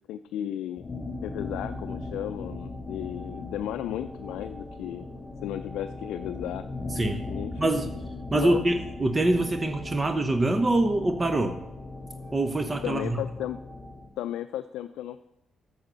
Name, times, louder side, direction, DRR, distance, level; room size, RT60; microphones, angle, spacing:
voice 1, 0.1-0.8 1.2-5.1 5.4-6.6 7.2-7.8 8.3-8.6 12.8-13.6 14.2-15.2, left 11 dB, 85° left, 9 dB, 0.4 m, -34 dB
sound 1, 0.8-14.1, left 2 dB, 25° left, 2.4 m, -38 dB
voice 2, 6.9-7.2 7.6-7.9 8.3-11.6 12.3-13.2, right 2 dB, 25° right, 7 dB, 0.8 m, -25 dB
8.9 x 7.0 x 6.7 m, 0.91 s
cardioid pair, 90°, 0 cm